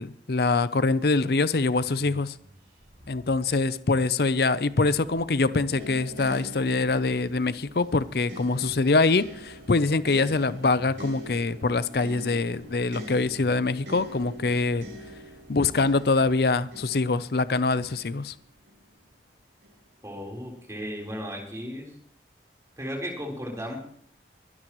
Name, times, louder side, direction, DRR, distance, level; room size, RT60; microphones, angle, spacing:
voice 1, 0.0-2.4 3.1-14.9 15.5-18.4, left 3 dB, 60° left, 15 dB, 0.6 m, -24 dB
sound 1, 1.1-18.3, equal, 55° right, 6.1 m, -54 dB
sound 2, 5.7-18.8 19.6-19.8, equal, 80° right, 4.2 m, -44 dB
voice 2, 20.0-22.0 22.8-23.8, equal, 15° right, -1 dB, 3.9 m, -35 dB
23.5 x 12.5 x 3.1 m, 0.62 s
head